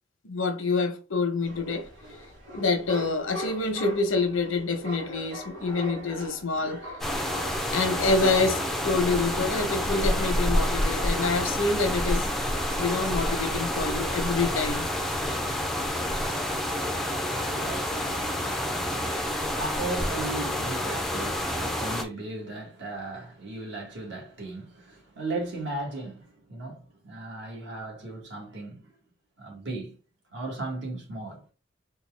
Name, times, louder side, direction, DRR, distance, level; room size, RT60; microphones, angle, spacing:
voice 1, 0.2-1.9 2.5-6.8 7.7-12.3 12.8-14.9, left 3 dB, 90° left, 0.9 m, -27 dB
sound 1, 1.4-7.6, equal, 90° right, 1.2 m, -40 dB
sound 2, 7.0-22.0, left 1 dB, ahead, 0.4 m, -28 dB
voice 2, 17.4-19.2 19.5-28.8 29.4-29.9 30.3-31.5, right 2 dB, 60° right, 1.6 m, -36 dB
4.1 x 2.3 x 3.4 m
head